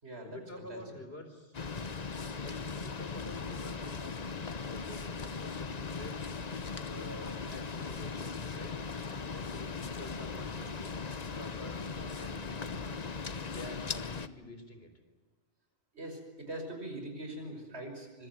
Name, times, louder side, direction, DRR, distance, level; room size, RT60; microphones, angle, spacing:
voice 1, 0.2-1.6 2.2-6.2 6.6-8.8 9.1-14.9, left 1 dB, 55° left, 7 dB, 4.3 m, -49 dB
sound 1, 1.5-14.3, left 5 dB, 35° left, 1.0 m, -39 dB
voice 2, 15.9-18.3, right 1 dB, 60° right, 4 dB, 5.9 m, -42 dB
25.0 x 23.5 x 9.4 m, 1.2 s
omnidirectional pair, 1.2 m